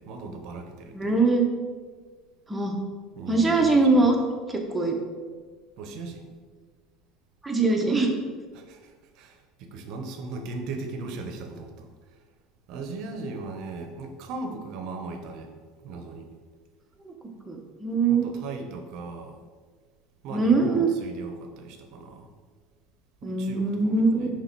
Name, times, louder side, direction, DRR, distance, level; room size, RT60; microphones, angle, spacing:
voice 1, 0.0-1.2 3.2-4.1 5.8-6.3 8.5-11.9 12.7-15.5 15.8-16.3 18.1-19.4 20.2-22.3 23.2-24.3, right 3 dB, 60° right, 6 dB, 0.8 m, -38 dB
voice 2, 0.9-1.4 2.5-2.8 3.3-4.1 4.5-5.0 7.4-8.1 17.0-17.1 17.5-18.3 20.3-20.9 23.2-24.3, right 3 dB, 15° right, 1 dB, 1.0 m, -22 dB
5.5 x 3.7 x 4.6 m, 1.5 s
supercardioid pair, 110°, 0 cm